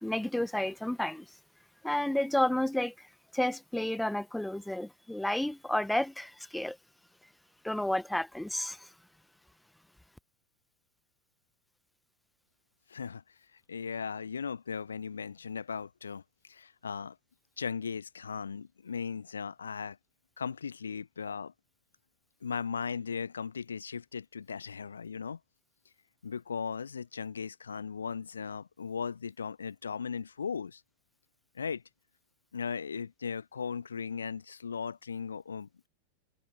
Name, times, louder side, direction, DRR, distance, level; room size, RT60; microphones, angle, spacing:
voice 1, 0.0-1.2 1.8-3.1 3.3-6.8 7.6-8.9, left 1 dB, 5° left, 1.2 m, -31 dB
voice 2, 12.9-13.2 13.5-16.2 16.5-17.2 17.6-20.0 20.4-21.5 22.4-25.4 26.2-30.8 31.5-31.8 32.5-35.9, left 6 dB, 70° left, 1.2 m, -37 dB
figure-of-eight pair, 90°, 0 cm